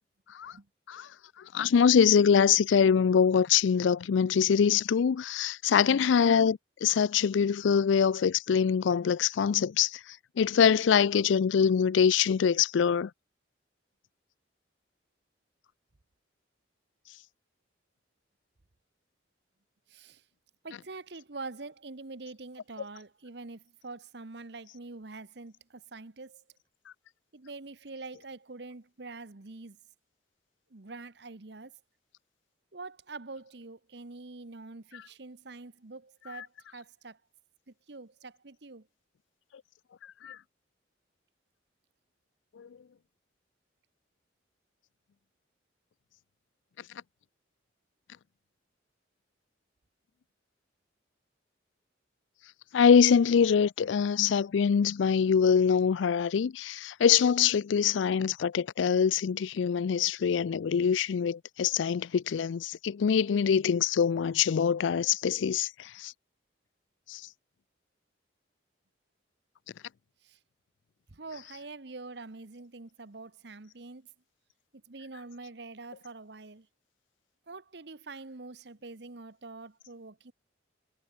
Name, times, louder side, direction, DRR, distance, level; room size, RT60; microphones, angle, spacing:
voice 1, 1.5-10.0 10.4-13.1 40.2-40.4 42.6-42.7 52.7-66.1 67.1-67.2, left 7 dB, 80° left, 0.4 m, -24 dB
voice 2, 19.9-20.2 20.6-26.4 27.3-29.8 30.7-31.7 32.7-37.2 37.7-38.9 70.2-70.4 71.1-74.1 74.7-76.7 77.5-80.3, right 3 dB, 65° right, 1.1 m, -45 dB
head